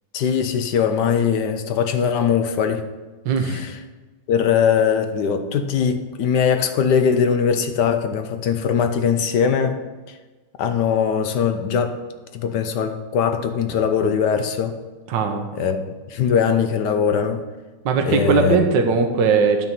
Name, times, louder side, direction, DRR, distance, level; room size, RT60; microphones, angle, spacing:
voice 1, 0.1-2.8 3.4-3.8 4.3-9.8 10.1-10.2 10.6-12.0 12.3-14.8 15.5-17.4 18.0-18.6, left 7 dB, 70° left, 8 dB, 1.2 m, -21 dB
voice 2, 3.2-3.6 15.1-15.5 17.8-19.7, right 5 dB, 75° right, 5 dB, 1.5 m, -19 dB
9.4 x 4.2 x 7.4 m, 1.3 s
omnidirectional pair, 2.0 m